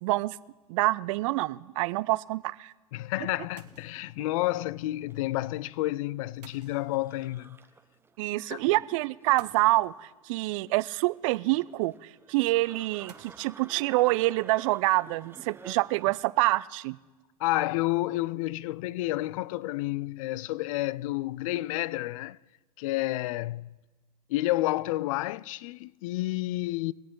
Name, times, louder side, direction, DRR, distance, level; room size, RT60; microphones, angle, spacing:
voice 1, 0.0-0.4 0.7-2.7 8.2-11.9 12.3-17.0, right 20 dB, 55° right, 0.5 m, -26 dB
sound 1, 0.6-0.9 3.6-4.2 6.4-7.3 9.4-10.3 13.1-13.5, right 8 dB, 85° right, 1.2 m, -55 dB
voice 2, 2.9-7.6 8.5-8.6 17.4-22.4 22.8-23.8 24.3-26.9, left 17 dB, 60° left, 0.4 m, -30 dB
sound 2, 3.0-16.2, right 4 dB, 10° right, 0.9 m, -54 dB
22.5 x 8.4 x 3.8 m
hypercardioid pair, 100°, 20 cm